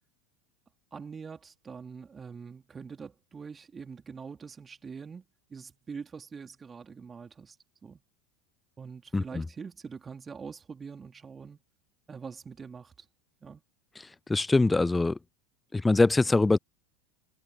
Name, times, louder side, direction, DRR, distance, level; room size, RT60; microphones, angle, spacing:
voice 1, 0.9-7.6 7.8-8.0 8.8-11.6 12.1-13.1 13.4-13.6, right 5 dB, 25° right, 3.5 m, -44 dB
voice 2, 9.1-9.4 14.3-15.2 15.7-16.6, left 3 dB, 10° left, 0.4 m, -23 dB
figure-of-eight pair, 80°, 0 cm